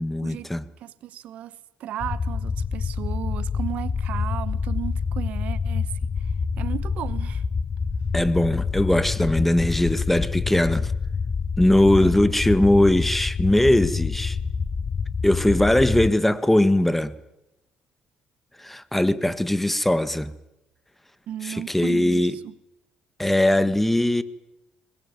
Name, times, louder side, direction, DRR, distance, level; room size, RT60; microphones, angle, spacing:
voice 1, 0.0-0.6 8.1-10.9 11.6-14.4 15.2-17.1 18.6-20.3 21.4-22.4 23.2-24.2, left 1 dB, 5° left, 1.7 m, -20 dB
voice 2, 0.8-5.9 6.6-7.4 11.9-12.2 15.6-15.7 21.3-22.5, right 12 dB, 65° right, 1.0 m, -35 dB
sound 1, 2.0-16.1, left 5 dB, 35° left, 1.1 m, -27 dB
23.0 x 21.5 x 9.6 m
hypercardioid pair, 55°, 2 cm